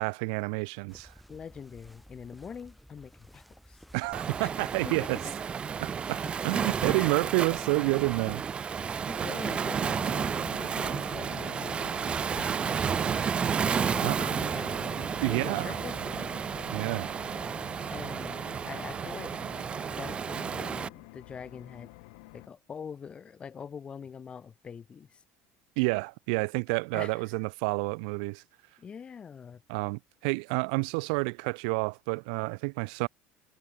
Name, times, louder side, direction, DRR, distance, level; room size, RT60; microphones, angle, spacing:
voice 1, 0.0-1.1 3.9-5.2 5.8-8.4 14.0-14.3 15.2-15.8 16.7-17.1 25.8-28.4 29.7-33.1, right 33 dB, 80° right, 0.6 m, -29 dB
sound 1, 0.9-17.8, equal, ahead, 4.0 m, -53 dB
voice 2, 1.3-3.8 4.4-4.5 4.8-5.3 6.2-6.3 6.9-7.2 9.1-12.0 12.4-12.6 13.8-16.4 17.9-19.4 20.0-21.9 22.3-25.2 26.9-27.3 28.8-29.6, left 6 dB, 25° left, 1.8 m, -44 dB
Waves surf, 4.1-20.9, right 7 dB, 25° right, 1.7 m, -32 dB
sound 2, 9.4-22.5, left 29 dB, 85° left, 2.9 m, -49 dB
cardioid pair, 150°, 4 cm